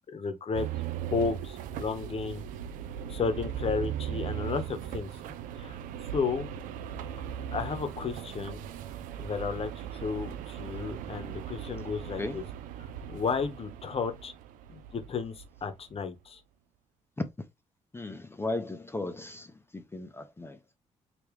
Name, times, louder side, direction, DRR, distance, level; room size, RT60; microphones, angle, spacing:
voice 1, 0.1-0.7 1.1-2.5 3.1-5.1 5.6-5.8 6.1-6.5 7.5-8.6 9.2-12.4 13.1-14.3 14.7-16.4, left 5 dB, 45° left, 0.9 m, -33 dB
sound 1, 0.5-15.7, right 10 dB, 85° right, 0.4 m, -38 dB
voice 2, 12.0-12.4 17.9-20.8, left 2 dB, 15° left, 0.6 m, -37 dB
3.4 x 2.9 x 3.1 m
supercardioid pair, 60°, 14 cm